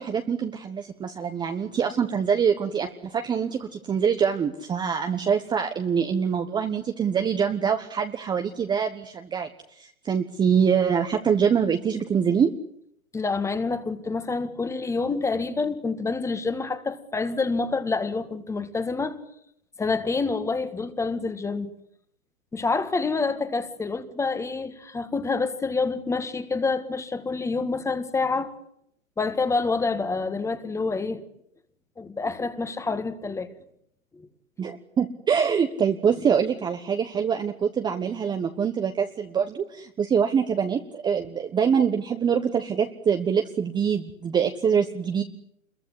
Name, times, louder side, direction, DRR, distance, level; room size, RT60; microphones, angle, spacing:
voice 1, 0.0-9.5 9.8-12.5 34.6-45.2, right 7 dB, 10° right, 1.2 m, -24 dB
voice 2, 13.1-19.2 19.8-21.7 22.5-28.5 29.2-31.2 32.0-33.5, left 4 dB, 5° left, 1.7 m, -27 dB
27.0 x 22.5 x 9.8 m
hypercardioid pair, 135°, 41 cm